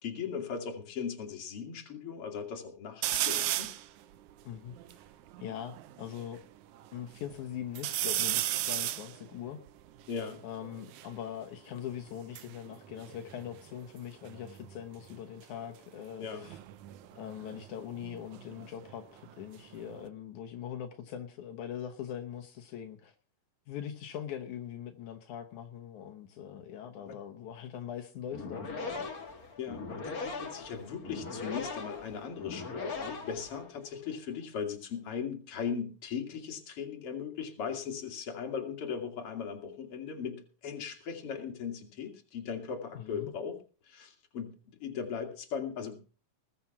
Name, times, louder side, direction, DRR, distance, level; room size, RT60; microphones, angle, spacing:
voice 1, 0.0-3.8 10.1-10.4 16.2-16.5 27.1-27.2 29.6-43.6 43.8-46.0, left 6 dB, 50° left, 4 dB, 3.0 m, -38 dB
sound 1, 3.0-3.9 4.4-4.5 4.7-6.3 6.8-7.4 7.8-11.1 12.1-14.0 14.2-14.7 16.3-18.9 19.3-20.1, right 14 dB, 80° right, 2.2 m, -35 dB
voice 2, 4.4-5.0 5.4-6.4 6.9-9.6 10.4-16.6 17.2-23.1 23.7-29.1 42.9-43.3, left 9 dB, 80° left, 3 dB, 2.6 m, -42 dB
sound 2, 28.2-34.0, left 4 dB, 30° left, 2.3 m, -40 dB
20.0 x 7.1 x 5.9 m, 0.37 s
omnidirectional pair, 3.4 m